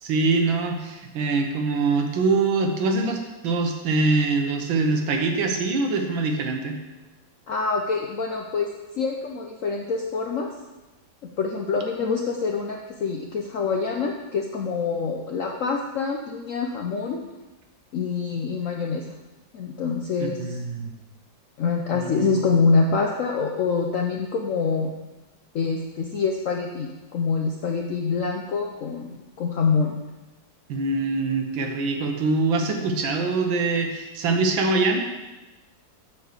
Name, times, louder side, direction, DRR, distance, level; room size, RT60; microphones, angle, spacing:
voice 1, 0.0-6.8 20.2-20.9 22.0-22.4 30.7-35.0, right 3 dB, 85° right, 4 dB, 1.8 m, -24 dB
voice 2, 7.5-8.7 8.9-10.5 11.4-17.2 17.9-19.0 19.5-20.6 21.6-24.9 25.5-30.0, left 4 dB, 70° left, 1 dB, 0.7 m, -25 dB
7.9 x 4.3 x 6.5 m, 1.1 s
omnidirectional pair, 2.1 m